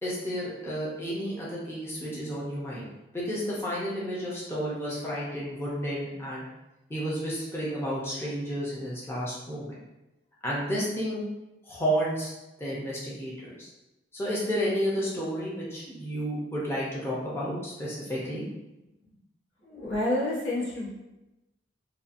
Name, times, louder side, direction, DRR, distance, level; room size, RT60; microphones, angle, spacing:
voice 1, 0.0-2.8 3.1-6.4 6.9-9.7 10.4-11.2 11.6-12.3 12.6-13.7 14.1-18.4, equal, 15° left, -7 dB, 0.5 m, -31 dB
voice 2, 19.6-20.9, left 1 dB, 90° left, -7 dB, 1.0 m, -29 dB
2.7 x 2.3 x 2.5 m, 0.99 s
head